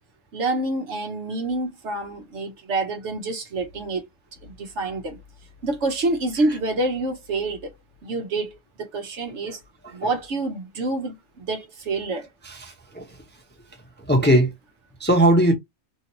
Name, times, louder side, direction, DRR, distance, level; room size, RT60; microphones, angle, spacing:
voice 1, 0.3-4.0 4.4-5.2 5.6-7.7 8.0-9.6 9.9-12.3, right 2 dB, 70° right, 1.2 m, -27 dB
voice 2, 12.4-13.2 14.0-14.5 15.0-15.5, right 1 dB, 10° left, 0.5 m, -20 dB
3.0 x 2.8 x 2.9 m
omnidirectional pair, 1.3 m